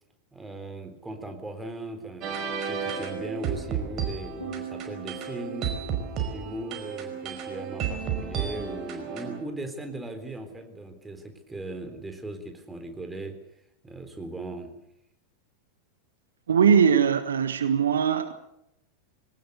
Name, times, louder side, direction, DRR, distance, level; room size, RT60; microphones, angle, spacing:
voice 1, 0.3-5.7 6.2-13.4 13.8-14.7, right 2 dB, 10° right, 6 dB, 3.9 m, -38 dB
sound 1, 2.2-9.4, right 7 dB, 35° right, 5.1 m, -32 dB
Piano, 4.4-7.8, right 7 dB, 80° left, 5.7 m, -43 dB
voice 2, 16.5-18.3, right 7 dB, 65° right, 11 dB, 1.5 m, -21 dB
22.5 x 19.0 x 8.2 m, 0.79 s
figure-of-eight pair, 90°, 0 cm